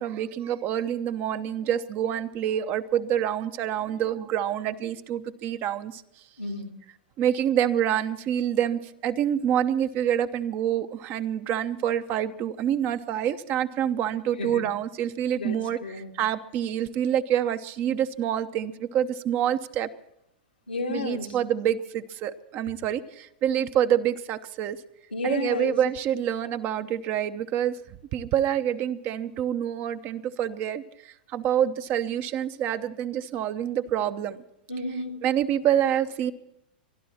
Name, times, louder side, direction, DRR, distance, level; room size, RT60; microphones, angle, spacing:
voice 1, 0.0-6.0 7.2-15.8 16.2-19.9 20.9-24.8 25.2-27.8 28.1-30.8 31.3-34.4 35.2-36.3, right 10 dB, 40° right, 11 dB, 0.8 m, -27 dB
voice 2, 6.4-6.7 14.4-14.7 15.4-16.1 20.7-21.4 25.1-25.8 34.7-35.1, left 2 dB, 90° left, 2 dB, 1.7 m, -32 dB
23.5 x 12.0 x 4.3 m, 0.81 s
hypercardioid pair, 105°, 5 cm